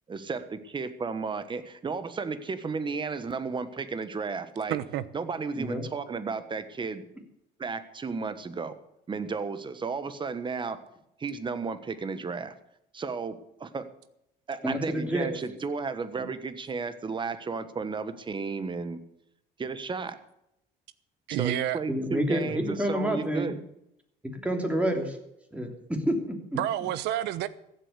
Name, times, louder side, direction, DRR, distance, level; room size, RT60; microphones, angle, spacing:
voice 1, 0.1-4.8 5.1-7.0 7.6-8.8 9.1-10.8 11.2-12.5 12.9-13.9 14.5-19.0 19.6-20.2 21.4-23.6, right 4 dB, 30° right, 1.4 m, -33 dB
voice 2, 4.7-5.0 21.3-21.8 26.5-27.5, right 13 dB, 85° right, 1.0 m, -29 dB
voice 3, 5.5-5.8 14.6-15.3 21.9-23.5 24.2-25.2 25.5-26.6, equal, 10° right, 3.1 m, -29 dB
15.0 x 8.4 x 8.2 m
cardioid pair, 110°, 17 cm